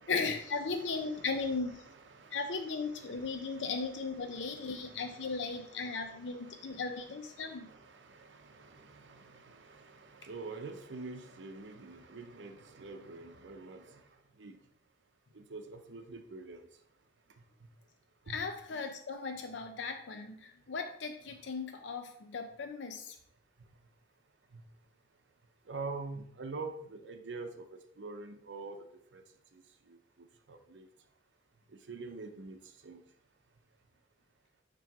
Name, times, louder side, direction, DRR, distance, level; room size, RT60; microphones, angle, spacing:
voice 1, 0.1-1.9 2.3-7.7 18.3-23.2, left 4 dB, 90° left, 6 dB, 0.6 m, -37 dB
voice 2, 2.9-3.7 4.2-6.8 7.3-13.9 14.4-14.5 15.4-16.6 18.3-18.4 25.7-27.6 28.0-28.8 29.1-29.2 30.5-30.9 31.9-32.6 32.8-33.0, right 3 dB, 90° right, 6 dB, 0.7 m, -46 dB
7.4 x 3.0 x 5.9 m, 0.68 s
head